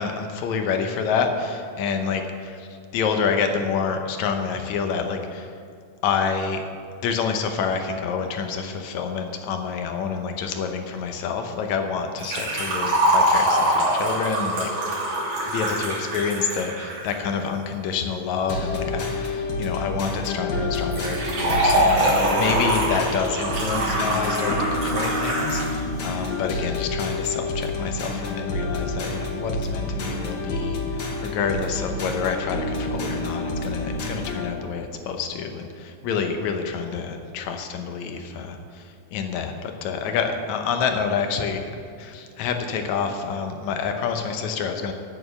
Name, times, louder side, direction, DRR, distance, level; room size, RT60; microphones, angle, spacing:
voice 1, 0.0-5.5 6.0-6.6 7.0-14.7 15.5-41.7 42.0-44.9, left 6 dB, 75° left, 5 dB, 2.2 m, -28 dB
Liquid, 12.2-17.2 20.9-25.7 26.0-26.1 27.0-27.1, right 1 dB, 80° right, 4.5 m, -23 dB
sound 1, 18.5-34.5, left 2 dB, 50° left, 1.3 m, -28 dB
9.0 x 6.6 x 7.9 m, 2.3 s
omnidirectional pair, 3.4 m